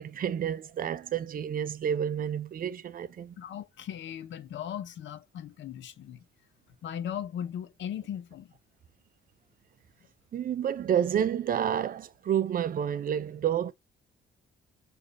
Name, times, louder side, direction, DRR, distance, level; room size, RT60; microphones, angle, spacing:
voice 1, 0.0-3.4 10.3-13.7, right 9 dB, 45° right, 0.5 m, -29 dB
voice 2, 3.4-6.2 6.8-8.5, left 9 dB, 70° left, 0.7 m, -38 dB
5.0 x 2.5 x 2.4 m
cardioid pair, 90°, 20 cm